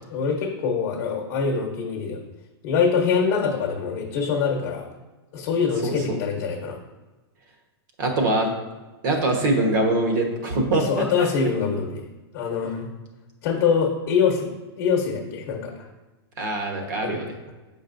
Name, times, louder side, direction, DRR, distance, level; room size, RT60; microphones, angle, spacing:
voice 1, 0.1-2.2 2.6-4.8 5.3-6.8 10.7-12.0 12.3-12.9 13.4-14.5 14.8-15.8 17.0-17.1, left 6 dB, 35° left, -1 dB, 1.1 m, -24 dB
voice 2, 5.8-6.2 8.0-8.5 9.0-11.5 16.4-17.3, right 2 dB, 45° right, 2 dB, 1.4 m, -23 dB
8.1 x 5.3 x 2.7 m, 1.2 s
supercardioid pair, 170°, 14 cm